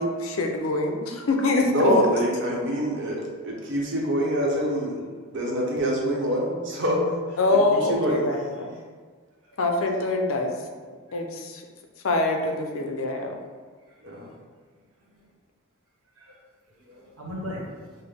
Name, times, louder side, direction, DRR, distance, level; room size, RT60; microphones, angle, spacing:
voice 1, 0.0-2.2 7.4-8.7 9.6-10.6 11.1-11.6 12.0-13.4, left 2 dB, 70° left, 3 dB, 0.5 m, -24 dB
voice 2, 1.6-5.0 5.3-7.0 7.9-8.2 14.0-14.3, equal, 60° right, -2 dB, 0.8 m, -25 dB
voice 3, 13.9-14.2 16.2-16.4 16.8-18.0, left 1 dB, 80° right, -3 dB, 1.1 m, -39 dB
5.6 x 2.1 x 3.4 m, 1.5 s
head